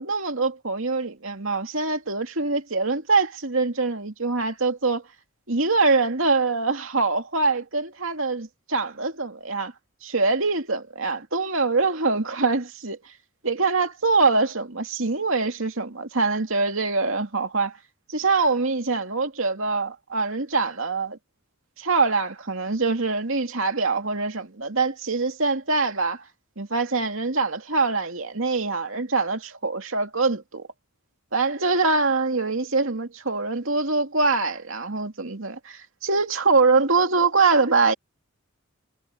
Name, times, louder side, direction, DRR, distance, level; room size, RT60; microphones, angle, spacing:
voice 1, 0.0-5.0 5.5-9.7 10.0-13.1 13.4-17.8 18.1-21.2 21.8-26.2 26.6-30.7 31.3-37.9, right 3 dB, 65° right, 2.6 m, -24 dB
head